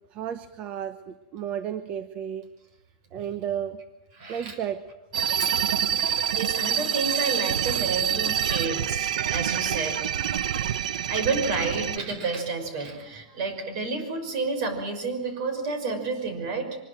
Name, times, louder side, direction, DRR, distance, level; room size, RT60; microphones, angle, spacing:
voice 1, 0.1-2.5 3.1-3.8 4.3-4.9, right 9 dB, 30° right, 13 dB, 1.0 m, -33 dB
voice 2, 4.2-4.6 5.4-5.6 5.9-10.2 10.6-10.7 11.1-16.8, right 4 dB, 45° right, 7 dB, 6.0 m, -30 dB
sound 1, 5.1-12.0, right 9 dB, 75° right, 1.0 m, -26 dB
24.0 x 21.5 x 7.7 m, 1.0 s
supercardioid pair, 155°, 4 cm